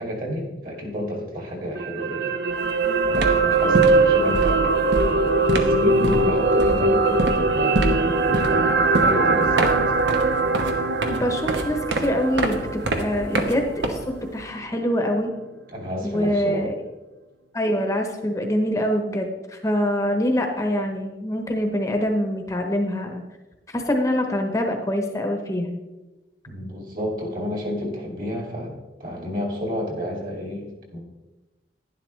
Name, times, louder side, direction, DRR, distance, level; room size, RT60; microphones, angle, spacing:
voice 1, 0.0-2.3 3.0-4.6 5.5-9.9 15.7-16.7 26.5-28.7 29.0-31.0, left 1 dB, 50° right, 0 dB, 2.3 m, -30 dB
sound 1, 1.8-14.1 14.4-14.6, right 3 dB, 70° right, 0.5 m, -21 dB
sound 2, 2.5-2.8 3.0-14.4, right 2 dB, 90° right, 1.1 m, -27 dB
voice 2, 11.1-15.3 16.0-16.7 17.5-23.2 23.7-25.8, equal, 20° left, 3 dB, 0.9 m, -24 dB
11.0 x 11.0 x 3.2 m, 1.1 s
head